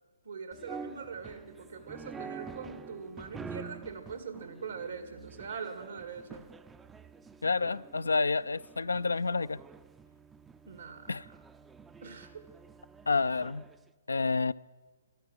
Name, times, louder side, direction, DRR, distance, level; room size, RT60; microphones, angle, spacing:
voice 1, 0.2-6.5 10.7-11.1 12.0-12.4, right 5 dB, 80° right, 1.9 m, -42 dB
sound 1, 0.5-13.8, right 5 dB, 10° right, 0.4 m, -48 dB
voice 2, 7.4-9.6 11.1-11.2 13.1-13.6 14.1-14.5, left 4 dB, 85° left, 0.4 m, -29 dB
13.0 x 11.0 x 9.1 m
hypercardioid pair, 135°, 0 cm